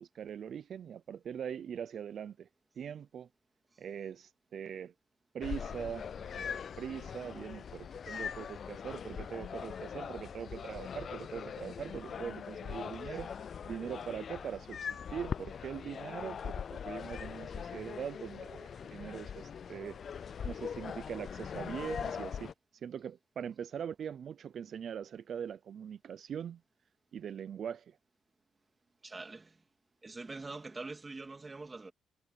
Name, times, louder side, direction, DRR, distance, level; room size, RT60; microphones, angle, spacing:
voice 1, 0.0-2.5 2.8-3.3 3.8-4.9 5.3-20.0 20.4-26.6 27.1-28.0, right 8 dB, 60° right, 0.6 m, -42 dB
sound 1, 5.4-22.5, left 7 dB, 50° left, 0.4 m, -41 dB
voice 2, 29.0-29.6 30.0-31.9, right 3 dB, 25° right, 2.9 m, -44 dB
cardioid pair, 90°, 0 cm